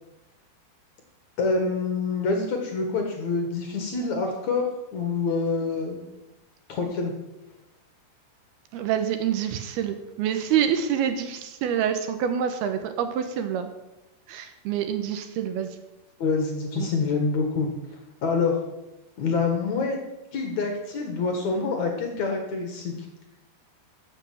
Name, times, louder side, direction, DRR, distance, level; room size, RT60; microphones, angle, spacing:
voice 1, 1.4-4.6 4.9-6.0 6.7-7.1 16.2-17.7 18.2-18.6 19.2-20.0 20.3-22.9, left 4 dB, 55° left, 3 dB, 2.5 m, -26 dB
voice 2, 8.7-13.7 14.3-15.7 16.8-16.9, right 9 dB, 75° right, 8 dB, 2.8 m, -27 dB
13.5 x 7.8 x 7.8 m, 0.96 s
omnidirectional pair, 4.8 m